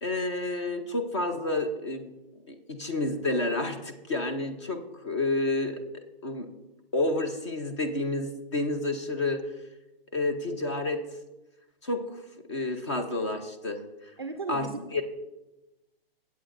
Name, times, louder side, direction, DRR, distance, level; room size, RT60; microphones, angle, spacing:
voice 1, 0.0-2.1 2.5-5.8 6.2-6.5 6.9-9.4 10.1-11.0 11.8-12.0 12.5-13.8 14.5-15.0, left 2 dB, 30° left, 6 dB, 0.7 m, -29 dB
voice 2, 14.2-14.8, right 4 dB, 25° right, 6 dB, 0.4 m, -35 dB
16.5 x 8.1 x 2.6 m, 1.0 s
hypercardioid pair, 170°, 30 cm